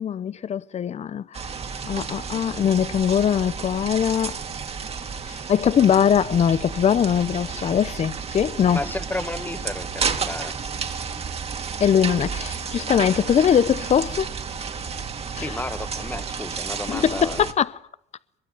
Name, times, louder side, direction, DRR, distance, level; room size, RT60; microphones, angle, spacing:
voice 1, 0.0-1.4 1.8-4.4 5.3-8.9 11.8-14.3 15.3-15.6 16.9-17.8, left 8 dB, 40° left, 0.9 m, -21 dB
sound 1, 1.3-17.5, right 5 dB, 35° right, 2.7 m, -32 dB
voice 2, 8.7-10.5 15.4-17.4, left 2 dB, 10° left, 1.9 m, -32 dB
23.0 x 23.0 x 9.4 m
cardioid pair, 110°, 17 cm